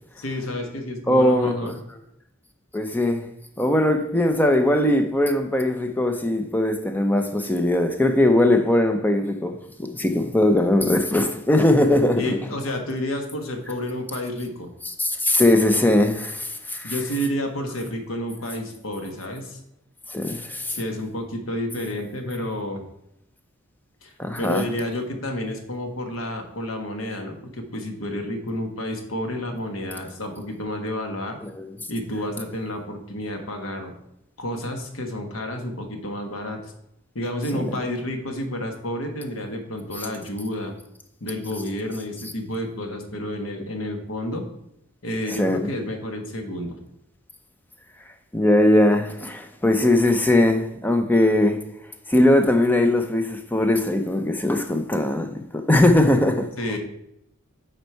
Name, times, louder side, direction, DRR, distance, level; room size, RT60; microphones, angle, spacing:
voice 1, 0.2-1.7 12.2-14.7 16.8-19.6 20.7-22.8 24.0-31.4 31.9-33.9 34.4-36.7 37.1-40.7 41.2-44.4 45.0-46.8 56.6-56.8, left 1 dB, 85° left, 1.3 m, -30 dB
voice 2, 1.1-1.8 2.7-3.2 3.6-12.4 15.0-16.9 20.1-20.8 24.2-24.6 31.4-31.7 37.5-37.6 45.3-45.7 48.3-51.6 52.1-56.5, left 1 dB, 10° left, 0.6 m, -20 dB
8.1 x 4.4 x 4.6 m
head